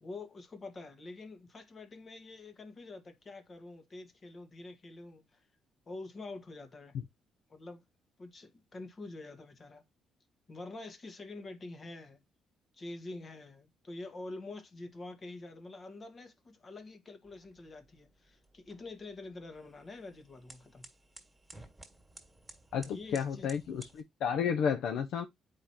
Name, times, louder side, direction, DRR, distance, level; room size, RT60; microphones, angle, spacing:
voice 1, 0.0-5.4 5.9-6.9 7.5-7.8 8.2-9.8 10.5-12.2 12.7-20.9 22.8-23.5, left 2 dB, 40° left, 1.6 m, -46 dB
sound 1, 17.2-24.0, right 1 dB, 10° right, 2.0 m, -56 dB
voice 2, 22.7-25.3, left 7 dB, 80° left, 0.6 m, -32 dB
8.0 x 5.0 x 2.9 m
cardioid pair, 90°, 0 cm